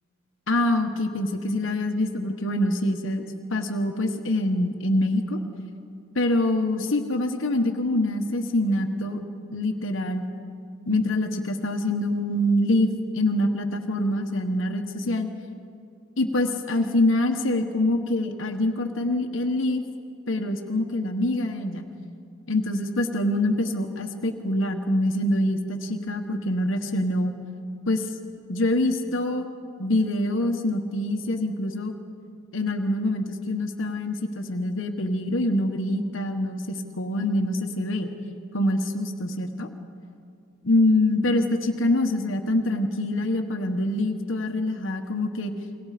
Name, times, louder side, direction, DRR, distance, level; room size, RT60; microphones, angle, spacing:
voice 1, 0.5-3.2 3.5-5.4 6.1-9.2 9.5-10.2 10.9-15.3 16.2-19.8 20.3-21.9 22.5-27.3 27.9-28.1 28.5-29.5 29.8-31.9 32.5-38.1 38.5-39.7 40.6-45.5, left 1 dB, 70° left, 4 dB, 1.4 m, -25 dB
29.5 x 22.0 x 5.1 m, 2.4 s
head